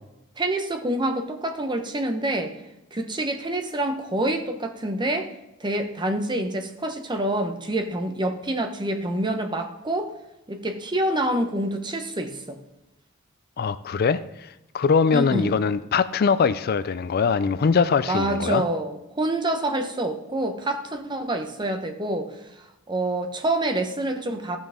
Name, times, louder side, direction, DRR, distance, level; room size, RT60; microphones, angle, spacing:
voice 1, 0.4-2.5 2.9-5.3 5.6-10.1 10.5-12.6 15.1-15.5 18.1-22.4 22.9-24.6, right 1 dB, 20° right, 5 dB, 1.0 m, -27 dB
voice 2, 13.6-18.6, left 5 dB, 45° left, 14 dB, 0.4 m, -22 dB
15.5 x 6.2 x 3.6 m, 0.94 s
head